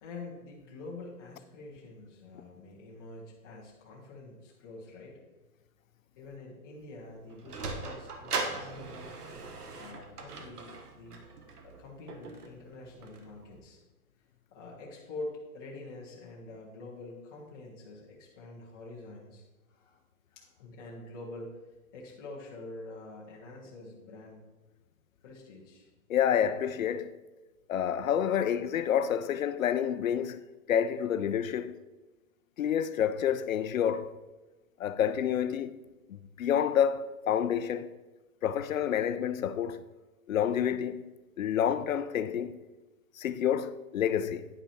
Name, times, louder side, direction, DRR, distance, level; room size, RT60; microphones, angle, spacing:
voice 1, 0.0-5.2 6.2-9.1 9.8-11.2 11.6-13.8 14.5-20.0 20.3-21.5 21.9-24.4 25.2-25.9, left 2 dB, 15° left, 0.8 m, -46 dB
Sliding door, 7.0-13.6, right 3 dB, 85° right, 1.4 m, -40 dB
voice 2, 26.1-27.1 27.7-31.8 32.6-34.2 34.8-35.7 36.1-37.9 38.4-39.8 40.3-41.1 41.4-42.6 43.2-44.5, left 9 dB, 60° left, 0.6 m, -28 dB
9.8 x 5.6 x 4.3 m
hypercardioid pair, 170°, 45 cm